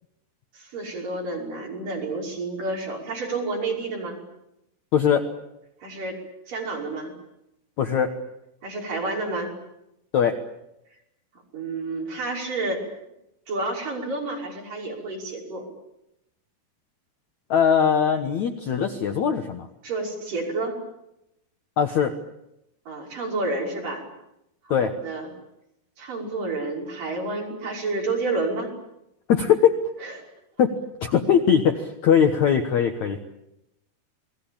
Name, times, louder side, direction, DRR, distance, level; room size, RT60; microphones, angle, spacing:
voice 1, 0.5-4.2 5.8-6.2 6.5-7.1 8.6-9.5 11.5-12.9 13.5-15.7 19.8-20.8 22.9-24.0 24.6-25.3 26.0-28.7 30.0-30.2, right 3 dB, 50° right, -1 dB, 7.2 m, -30 dB
voice 2, 4.9-5.3 7.8-8.1 10.1-10.4 17.5-19.7 21.8-22.2 24.7-24.9 29.3-29.8 30.6-30.7 31.0-33.2, left 8 dB, 60° left, 6 dB, 2.0 m, -20 dB
30.0 x 20.5 x 8.8 m, 0.85 s
omnidirectional pair, 4.8 m